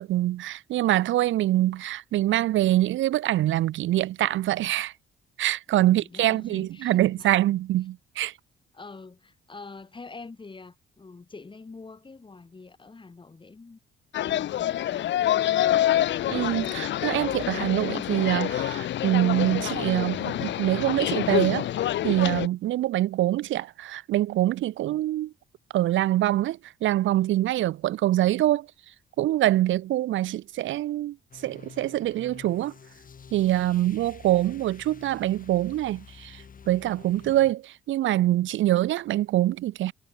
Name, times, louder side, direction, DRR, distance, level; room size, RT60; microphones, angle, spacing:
voice 1, 0.0-4.9 5.4-8.3 16.3-25.3 25.7-28.7 29.2-32.7 33.3-39.9, right 14 dB, 75° right, 0.7 m, -25 dB
voice 2, 5.8-7.3 8.7-13.8 14.2-15.8, left 3 dB, 25° left, 3.0 m, -45 dB
sound 1, 14.1-22.5, left 12 dB, 65° left, 0.8 m, -27 dB
sound 2, 31.3-37.5, left 6 dB, 45° left, 6.1 m, -48 dB
cardioid pair, 90°, 20 cm